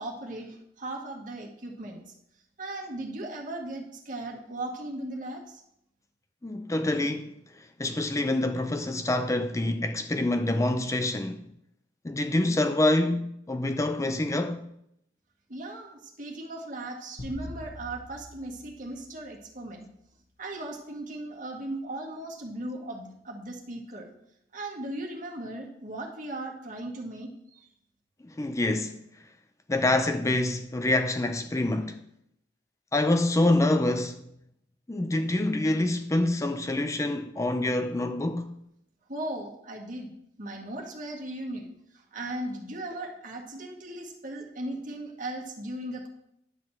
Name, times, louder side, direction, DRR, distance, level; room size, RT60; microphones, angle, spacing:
voice 1, 0.0-2.0 2.6-5.6 15.5-19.9 20.4-24.1 24.5-27.7 39.1-40.1 40.4-41.7 41.9-46.1, right 1 dB, 45° right, 1.8 m, -37 dB
voice 2, 6.4-11.5 12.0-14.7 28.2-29.0 29.7-32.0 32.9-34.2 34.9-38.6, left 2 dB, 15° left, 0.4 m, -26 dB
sound 1, 17.2-19.8, left 1 dB, 70° left, 2.8 m, -44 dB
10.5 x 4.1 x 7.6 m
head